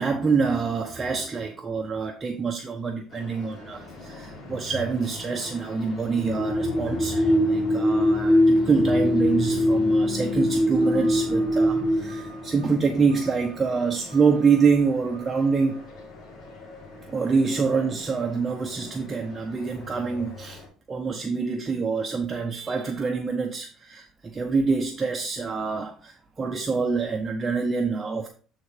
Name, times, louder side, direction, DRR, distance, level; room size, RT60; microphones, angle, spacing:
voice 1, 0.0-15.9 17.1-20.6 20.9-28.3, right 5 dB, 25° right, 0.9 m, -26 dB
sound 1, 3.1-20.6, equal, 50° left, 2.6 m, -26 dB
8.0 x 3.7 x 4.8 m
supercardioid pair, 100°, 0 cm